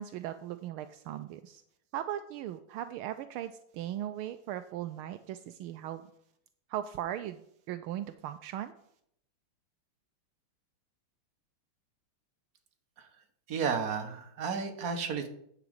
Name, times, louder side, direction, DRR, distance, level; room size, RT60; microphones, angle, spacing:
voice 1, 0.0-1.6 1.9-6.0 6.7-8.7, right 11 dB, 80° right, 10 dB, 1.4 m, -38 dB
voice 2, 13.5-15.3, right 6 dB, 50° right, 5 dB, 1.6 m, -32 dB
9.9 x 5.0 x 8.0 m, 0.71 s
omnidirectional pair, 2.4 m